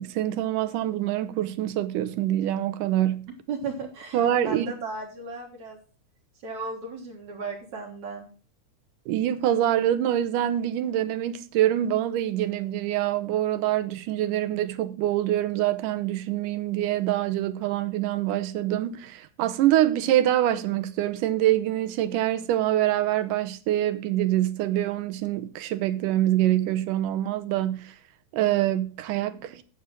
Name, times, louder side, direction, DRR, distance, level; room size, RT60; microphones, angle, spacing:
voice 1, 0.0-3.3 4.1-4.7 9.1-28.0 28.3-29.6, right 12 dB, 80° right, 2.4 m, -25 dB
voice 2, 3.3-5.8 6.4-8.3, right 4 dB, 60° right, 2.8 m, -35 dB
9.8 x 7.3 x 6.3 m
omnidirectional pair, 3.8 m